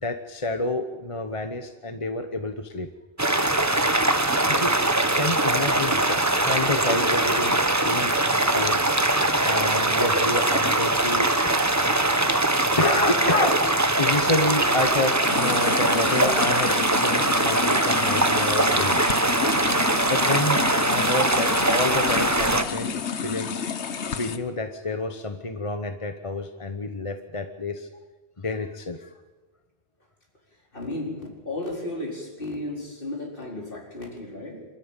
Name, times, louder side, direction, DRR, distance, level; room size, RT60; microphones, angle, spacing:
voice 1, 0.0-2.9 4.3-4.7 5.2-8.9 9.4-11.5 12.8-13.7 14.0-19.0 19.8-20.6 20.9-22.9 23.2-23.6 24.2-27.9 28.4-29.1, left 2 dB, 30° left, 7 dB, 1.1 m, -29 dB
sound 1, 3.2-22.6, right 2 dB, 15° right, 1.1 m, -22 dB
sound 2, 15.2-24.4, left 7 dB, 90° left, 1.4 m, -31 dB
voice 2, 30.7-34.7, left 2 dB, 55° left, 0 dB, 4.5 m, -34 dB
25.5 x 13.5 x 9.0 m, 1.3 s
omnidirectional pair, 1.1 m